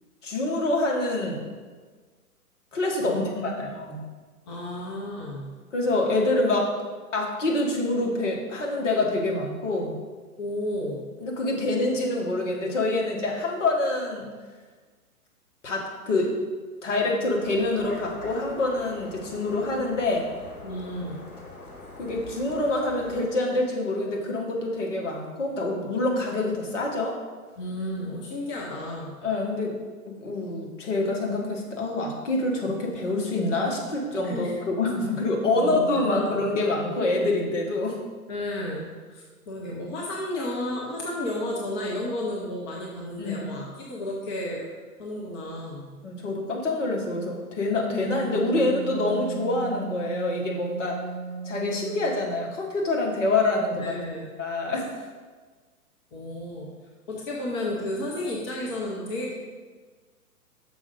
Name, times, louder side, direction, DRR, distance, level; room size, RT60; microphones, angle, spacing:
voice 1, 0.2-1.4 2.7-4.1 5.7-6.7 7.1-10.0 11.2-14.3 15.6-16.3 16.8-20.3 22.0-27.2 29.2-29.7 30.2-38.0 43.2-43.5 46.0-51.0 51.4-54.0 54.4-55.0, left 2 dB, 55° left, -1 dB, 1.7 m, -26 dB
voice 2, 3.0-3.7 4.5-5.5 10.4-11.1 20.6-21.2 27.6-29.2 34.2-34.6 35.5-36.4 38.3-44.7 45.0-45.9 53.8-54.3 56.1-56.8 57.1-59.3, left 1 dB, 20° left, -2 dB, 0.6 m, -32 dB
sound 1, 17.4-23.3, left 2 dB, 75° left, 1.9 m, -43 dB
Wind instrument woodwind instrument, 48.1-52.5, right 5 dB, 50° right, 0.5 m, -36 dB
6.2 x 4.9 x 5.3 m, 1.4 s
figure-of-eight pair, 120°, 45 cm